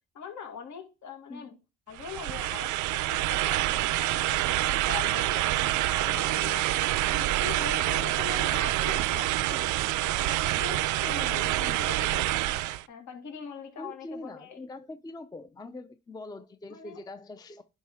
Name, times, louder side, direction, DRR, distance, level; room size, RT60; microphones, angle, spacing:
voice 1, 0.1-1.6 1.9-6.8 7.1-9.7 10.2-12.4 12.9-14.6 16.7-17.0, left 6 dB, 70° left, 2.1 m, -42 dB
sound 1, 2.0-12.8, right 15 dB, 75° right, 0.4 m, -27 dB
voice 2, 13.8-17.6, left 2 dB, 15° left, 0.5 m, -43 dB
10.5 x 4.3 x 3.6 m
cardioid pair, 90°, 30 cm